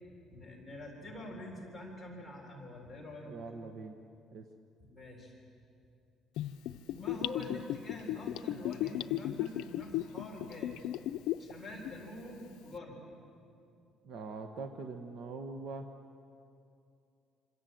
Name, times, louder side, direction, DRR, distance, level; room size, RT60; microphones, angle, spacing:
voice 1, 0.3-3.3 4.9-5.3 6.9-10.8 11.4-13.0, left 1 dB, ahead, -4 dB, 3.8 m, -46 dB
voice 2, 3.3-4.0 4.3-4.5 14.0-15.9, right 4 dB, 50° right, 4 dB, 1.2 m, -43 dB
Gurgling / Bathtub (filling or washing), 6.4-11.5 11.8-11.9, left 14 dB, 80° left, 0.6 m, -35 dB
26.5 x 26.5 x 7.8 m, 2.6 s
cardioid pair, 175°, 0 cm